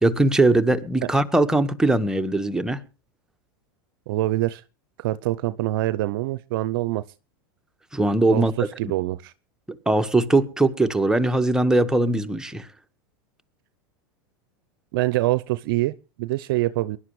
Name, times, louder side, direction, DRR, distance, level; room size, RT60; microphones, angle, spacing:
voice 1, 0.0-2.8 7.9-8.7 9.8-12.7, right 2 dB, 5° right, 1.5 m, -20 dB
voice 2, 4.1-4.6 5.0-7.0 8.3-8.5 8.8-9.3 14.9-17.0, right 16 dB, 65° right, 0.6 m, -25 dB
23.0 x 11.5 x 3.2 m
hypercardioid pair, 95°, 12 cm